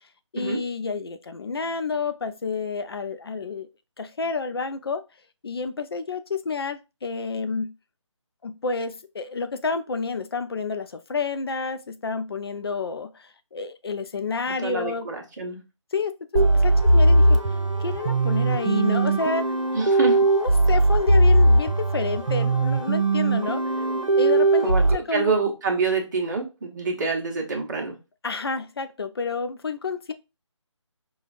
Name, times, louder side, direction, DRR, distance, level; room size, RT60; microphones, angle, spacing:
voice 1, 0.3-3.7 4.0-5.0 5.4-7.7 8.4-15.1 15.9-16.1 16.5-17.4 17.8-19.5 20.3-23.6 24.2-25.3 28.2-30.1, left 4 dB, 50° left, 0.5 m, -29 dB
voice 2, 14.5-15.6 19.7-20.2 24.6-27.9, right 4 dB, 35° right, 1.1 m, -26 dB
sound 1, 16.3-24.9, right 2 dB, 80° right, 0.9 m, -19 dB
5.4 x 2.3 x 2.5 m
figure-of-eight pair, 160°, 16 cm